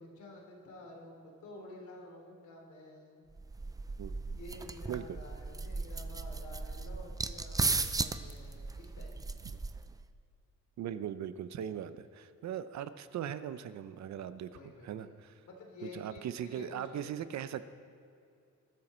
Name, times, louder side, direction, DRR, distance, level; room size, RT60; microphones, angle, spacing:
voice 1, 0.0-3.2 4.4-9.1 14.5-15.1 15.4-17.0, left 1 dB, 75° left, 0 dB, 3.4 m, -50 dB
sound 1, 3.4-10.0, right 3 dB, 15° right, 0.4 m, -36 dB
voice 2, 10.8-14.5 14.8-15.4 15.8-17.7, right 9 dB, 70° right, 13 dB, 0.7 m, -39 dB
21.5 x 13.0 x 4.4 m, 2.5 s
wide cardioid pair, 175°, 29 cm